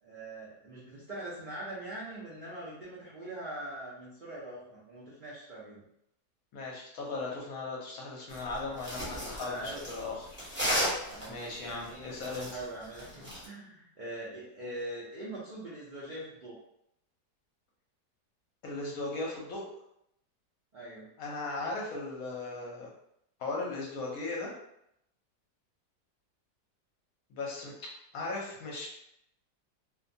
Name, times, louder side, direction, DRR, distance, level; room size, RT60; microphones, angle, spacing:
voice 1, 0.0-5.8 9.4-10.2 11.1-16.5 20.7-21.1, right 1 dB, 85° right, -8 dB, 0.4 m, -42 dB
voice 2, 6.5-10.4 11.3-12.6 18.6-19.7 21.2-22.9 23.4-24.5 27.3-27.7 28.1-28.9, left 3 dB, 65° left, -2 dB, 1.0 m, -37 dB
sound 1, 8.3-13.4, equal, 15° right, 0.4 m, -35 dB
2.7 x 2.2 x 2.6 m, 0.76 s
omnidirectional pair, 1.8 m